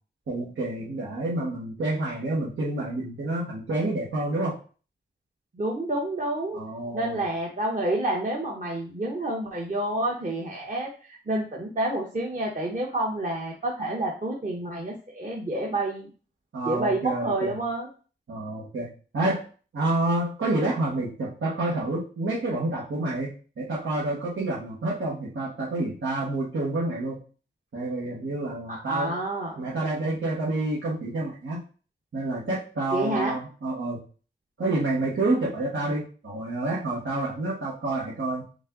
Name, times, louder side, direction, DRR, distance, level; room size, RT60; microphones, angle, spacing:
voice 1, 0.3-4.6 6.5-7.2 16.5-17.5 18.3-19.4 19.7-27.2 27.7-29.1 29.6-31.6 32.1-34.0 34.6-38.5, right 2 dB, 90° right, -7 dB, 1.4 m, -28 dB
voice 2, 5.5-6.6 6.9-16.1 16.6-17.9 28.7-29.6 32.9-33.3, right 1 dB, 40° right, -3 dB, 0.9 m, -29 dB
5.3 x 2.6 x 3.8 m, 0.37 s
wide cardioid pair, 100°, 20 cm